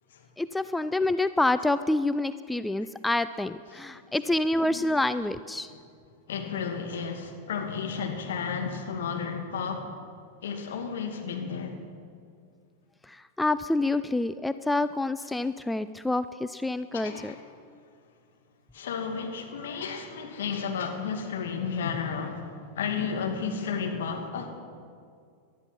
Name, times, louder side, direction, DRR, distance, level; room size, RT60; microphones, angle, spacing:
voice 1, 0.4-5.7 13.4-17.3, left 2 dB, 5° left, 12 dB, 0.4 m, -27 dB
voice 2, 3.7-4.0 4.6-5.0 5.7-5.8 6.3-9.9 10.4-11.8 16.9-17.5 18.7-24.5, left 6 dB, 60° left, 3 dB, 2.2 m, -33 dB
19.5 x 12.5 x 5.7 m, 2.3 s
figure-of-eight pair, 90°, 0 cm